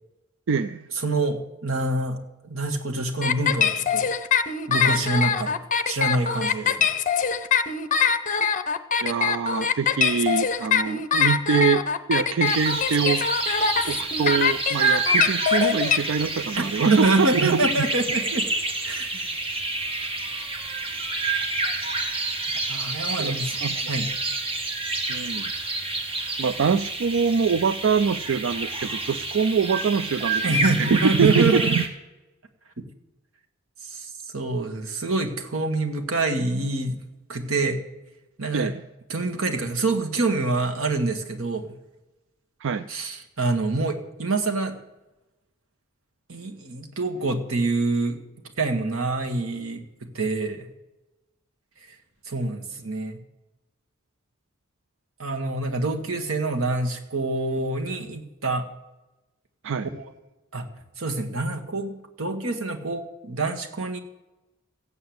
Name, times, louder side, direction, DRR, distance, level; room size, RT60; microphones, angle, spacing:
voice 1, 0.5-0.9 9.0-13.2 13.9-17.6 23.2-23.3 23.6-23.9 25.1-25.5 26.4-31.8 38.5-38.9 42.6-42.9 59.6-59.9, right 5 dB, 65° right, 12 dB, 0.4 m, -24 dB
voice 2, 1.0-2.2 2.4-4.1 4.7-5.5 5.9-6.9 16.9-18.5 18.8-19.3 22.7-23.6 23.9-24.1 30.4-31.8 33.9-34.1 34.3-37.0 37.3-37.8 38.4-38.7 39.1-41.7 42.9-44.8 46.3-48.2 48.6-50.7 52.3-53.2 55.2-58.7 60.0-60.1 60.5-60.7 61.0-64.0, right 2 dB, 90° right, 4 dB, 1.8 m, -26 dB
sound 1, 3.2-16.0, left 6 dB, 40° left, 0.8 m, -23 dB
sound 2, 12.4-31.9, right 2 dB, 25° right, 1.7 m, -28 dB
15.0 x 8.8 x 7.9 m, 1.0 s
head